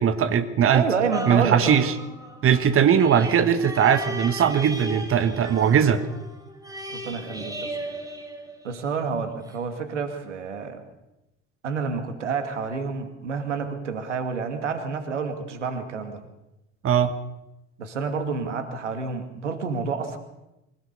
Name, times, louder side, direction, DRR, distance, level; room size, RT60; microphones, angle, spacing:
voice 1, 0.0-0.8 1.3-1.9 2.4-6.0 16.8-17.1, right 8 dB, 40° right, 10 dB, 1.6 m, -20 dB
voice 2, 0.7-1.8 6.9-7.8 8.6-10.8 11.6-16.2 17.8-20.2, right 5 dB, 80° right, 7 dB, 2.4 m, -29 dB
sound 1, 1.1-9.0 9.5-9.6, right 1 dB, 10° right, 5.5 m, -36 dB
24.5 x 17.0 x 6.9 m, 0.94 s
figure-of-eight pair, 60°, 35 cm